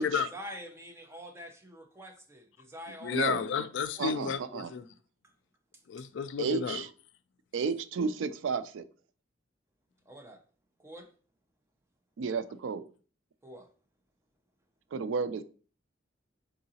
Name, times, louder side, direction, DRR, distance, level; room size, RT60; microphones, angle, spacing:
voice 1, 0.0-3.4 4.0-4.1 10.1-10.4 10.8-11.1 13.4-13.7, equal, 15° right, 0.6 m, -46 dB
voice 2, 2.9-4.8 5.9-6.8, left 6 dB, 70° left, 0.3 m, -32 dB
voice 3, 4.0-4.7 6.4-6.9 7.5-8.8 12.2-12.8 14.9-15.4, right 5 dB, 90° right, 0.4 m, -32 dB
3.8 x 3.7 x 2.8 m
head